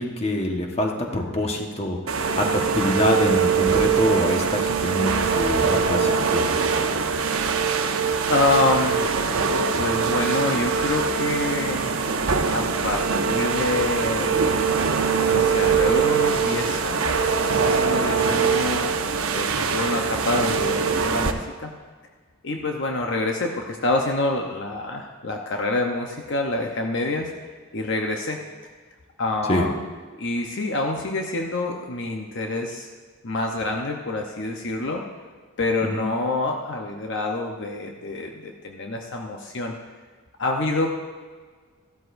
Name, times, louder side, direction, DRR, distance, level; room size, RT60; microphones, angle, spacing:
voice 1, 0.0-2.0 2.3-6.6 29.5-29.7 35.9-36.0, left 1 dB, 30° left, 1 dB, 1.3 m, -25 dB
sound 1, 2.1-21.3, right 5 dB, 65° right, 0.8 m, -22 dB
voice 2, 8.3-9.5 9.8-12.0 12.5-14.6 15.3-18.9 19.3-21.7 22.4-27.3 27.7-28.4 29.2-29.8 30.2-32.9 33.2-35.1 35.6-39.7 40.4-40.9, left 2 dB, 55° left, 2 dB, 0.9 m, -27 dB
15.5 x 12.5 x 2.6 m, 1.5 s
head